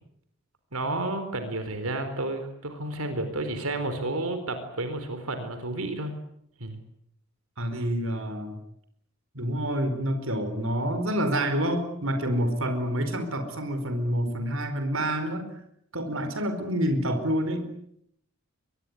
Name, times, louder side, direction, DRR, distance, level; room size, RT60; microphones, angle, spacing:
voice 1, 0.7-6.1 6.6-6.8, right 2 dB, 90° right, 8 dB, 4.1 m, -31 dB
voice 2, 7.6-8.6 9.3-15.5 15.9-17.7, equal, 65° right, 8 dB, 4.6 m, -28 dB
24.5 x 21.0 x 9.7 m, 0.74 s
head